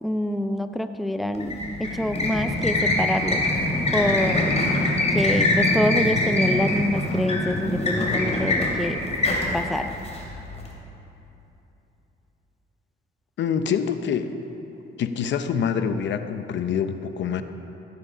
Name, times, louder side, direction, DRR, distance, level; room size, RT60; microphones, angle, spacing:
voice 1, 0.0-3.4 3.9-4.5 5.1-9.0 9.5-9.9, left 1 dB, ahead, 8 dB, 0.5 m, -26 dB
sound 1, 1.3-10.7, left 2 dB, 35° left, 2.7 m, -24 dB
voice 2, 13.4-14.3 15.0-17.4, left 7 dB, 65° left, 9 dB, 0.8 m, -25 dB
16.0 x 9.8 x 5.1 m, 3.0 s
cardioid pair, 90°, 20 cm